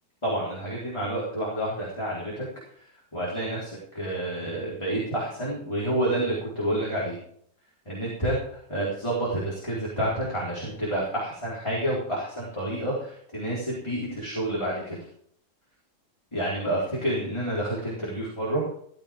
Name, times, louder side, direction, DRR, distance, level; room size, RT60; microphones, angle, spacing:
voice 1, 0.2-2.5 3.1-7.2 7.9-15.0 16.3-18.7, right 1 dB, 15° left, -6 dB, 4.4 m, -29 dB
16.0 x 15.5 x 3.7 m, 0.66 s
omnidirectional pair, 1.9 m